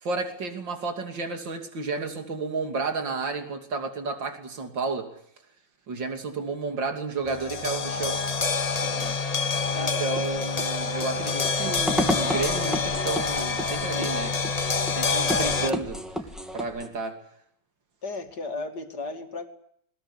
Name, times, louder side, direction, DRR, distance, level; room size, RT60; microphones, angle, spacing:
voice 1, 0.0-5.1 5.9-8.2 9.7-14.4 14.9-16.0 16.5-17.2, right 3 dB, 80° right, 5 dB, 3.6 m, -31 dB
sound 1, 7.2-15.7, left 4 dB, 25° left, 0.9 m, -27 dB
voice 2, 8.8-9.2 9.7-10.1 11.1-11.9 18.0-19.5, left 3 dB, 60° left, 6 dB, 3.1 m, -36 dB
sound 2, 10.1-16.9, equal, ahead, 3.0 m, -32 dB
21.0 x 21.0 x 9.9 m, 0.68 s
omnidirectional pair, 2.0 m